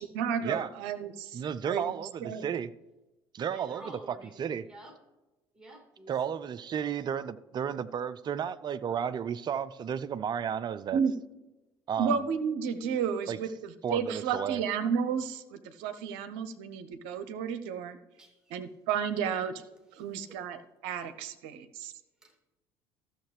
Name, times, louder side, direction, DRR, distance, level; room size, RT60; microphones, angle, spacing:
voice 1, 0.0-1.9 2.2-2.5 10.9-11.1 12.0-18.0 18.5-19.5 19.9-21.9, right 7 dB, 65° right, 11 dB, 0.7 m, -32 dB
voice 2, 1.3-2.7 3.3-4.7 6.1-11.0 11.9-12.2 13.3-13.4 13.8-14.6, right 8 dB, 35° right, 14 dB, 0.5 m, -33 dB
voice 3, 3.4-4.3 4.6-5.0 5.5-6.1 18.2-18.6 20.2-20.4 22.2-22.4, right 1 dB, 5° right, 1 dB, 2.5 m, -50 dB
14.0 x 6.5 x 3.3 m, 1.1 s
figure-of-eight pair, 60°, 13 cm